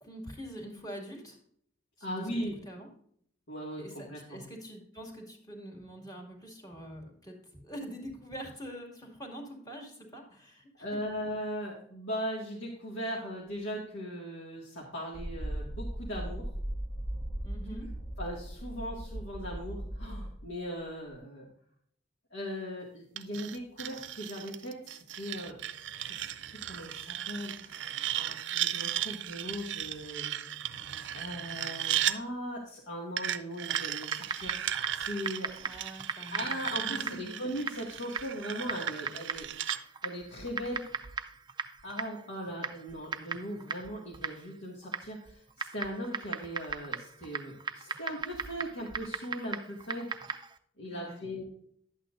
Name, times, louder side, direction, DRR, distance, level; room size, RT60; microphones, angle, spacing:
voice 1, 0.0-1.4 2.1-2.3 2.6-2.9 3.8-10.9 17.4-17.9 35.6-36.6 36.9-37.4 50.9-51.3, equal, 20° left, 1 dB, 2.1 m, -45 dB
voice 2, 2.0-2.5 3.5-4.4 10.8-16.5 17.7-17.8 18.2-21.5 22.3-25.6 26.0-30.3 31.1-35.5 36.3-39.5 40.0-40.8 41.8-50.1 50.8-51.4, equal, 80° left, -4 dB, 2.0 m, -39 dB
sound 1, 15.1-20.5, right 1 dB, 35° left, 1.3 m, -38 dB
sound 2, 23.2-32.2 33.2-39.8, right 11 dB, 70° right, 0.5 m, -36 dB
Typing, 33.7-50.6, right 5 dB, 25° right, 0.4 m, -39 dB
11.5 x 8.6 x 2.5 m, 0.64 s
head